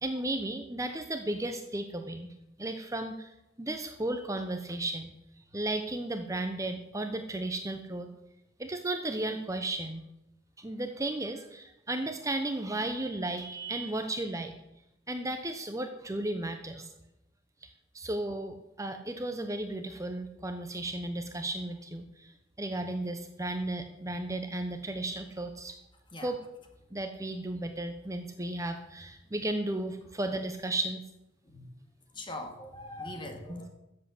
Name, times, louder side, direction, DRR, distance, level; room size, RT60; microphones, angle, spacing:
voice 1, 0.0-2.3 2.6-3.3 3.6-8.1 8.6-10.0 10.6-14.5 15.1-16.9 17.6-25.8 26.2-26.4 26.9-31.0 33.5-33.6, right 1 dB, 15° right, 6 dB, 0.9 m, -34 dB
voice 2, 32.1-33.7, left 1 dB, 25° left, 4 dB, 2.0 m, -41 dB
13.5 x 7.6 x 8.2 m, 0.86 s
head